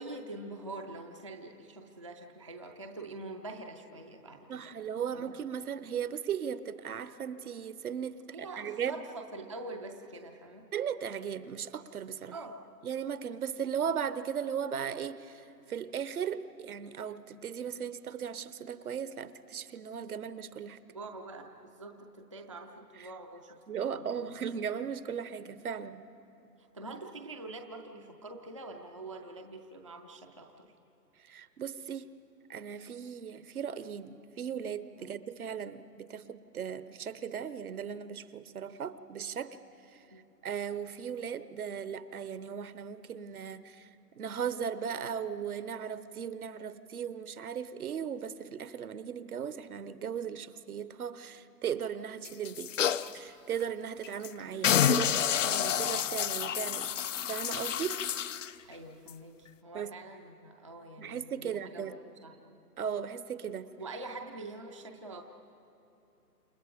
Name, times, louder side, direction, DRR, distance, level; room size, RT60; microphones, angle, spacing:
voice 1, 0.0-4.7 5.1-5.3 8.3-10.7 12.3-12.6 20.9-24.3 26.7-30.7 35.0-35.1 40.1-40.2 54.5-54.6 58.7-62.3 63.8-65.2, right 2 dB, 20° right, 3 dB, 0.4 m, -45 dB
voice 2, 4.5-9.0 10.7-12.4 12.8-20.8 23.0-23.1 23.7-26.0 31.2-32.1 32.5-39.6 39.9-40.0 40.4-43.9 44.2-52.7 53.1-56.9 57.2-58.0 59.7-59.9 61.0-61.9 62.8-63.7, right 8 dB, 65° right, 14 dB, 1.0 m, -37 dB
sound 1, 52.2-53.1 53.6-53.7 54.0-54.3 54.6-58.5 59.1-59.2, left 9 dB, 50° left, 0.7 m, -29 dB
29.5 x 28.5 x 5.1 m, 2.8 s
hypercardioid pair, 150°, 48 cm